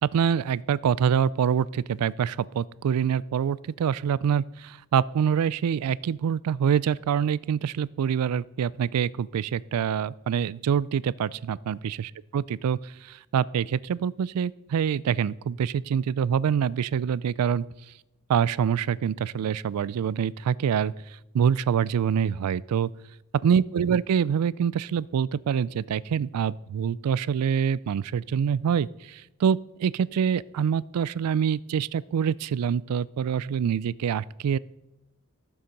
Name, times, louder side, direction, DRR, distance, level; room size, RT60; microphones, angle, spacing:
voice 1, 0.1-17.7 18.3-20.9 21.3-22.9 23.4-34.6, right 7 dB, 90° right, 21 dB, 0.3 m, -25 dB
14.0 x 7.1 x 5.2 m, 0.93 s
head